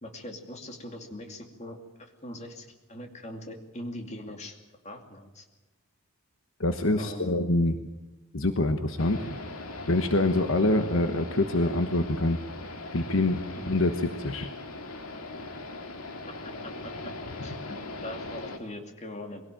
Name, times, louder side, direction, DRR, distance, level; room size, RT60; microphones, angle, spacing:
voice 1, 0.0-1.8 2.2-4.6 4.8-5.4 7.0-7.4 13.6-13.7 16.4-17.1 17.4-19.4, left 1 dB, 30° left, 4 dB, 2.7 m, -41 dB
voice 2, 6.6-7.8 8.3-9.4 9.9-12.4 12.9-13.4 13.7-14.5, left 2 dB, 65° left, 7 dB, 1.2 m, -25 dB
sound 1, 9.0-18.6, left 2 dB, 80° left, 2.3 m, -40 dB
23.0 x 17.5 x 9.0 m, 1.1 s
head